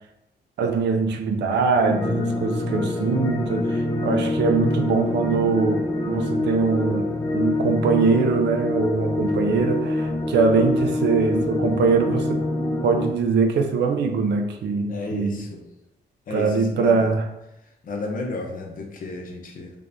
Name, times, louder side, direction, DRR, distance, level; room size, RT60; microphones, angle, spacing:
voice 1, 0.6-12.4 12.8-15.4 16.3-17.3, right 4 dB, 80° right, 4 dB, 0.5 m, -22 dB
sound 1, 1.9-13.1, left 2 dB, 20° left, 0.4 m, -25 dB
voice 2, 14.9-15.6 16.3-17.1 17.8-19.7, left 3 dB, 50° left, 2 dB, 0.7 m, -33 dB
3.3 x 3.3 x 2.6 m, 0.88 s
wide cardioid pair, 150°, 18 cm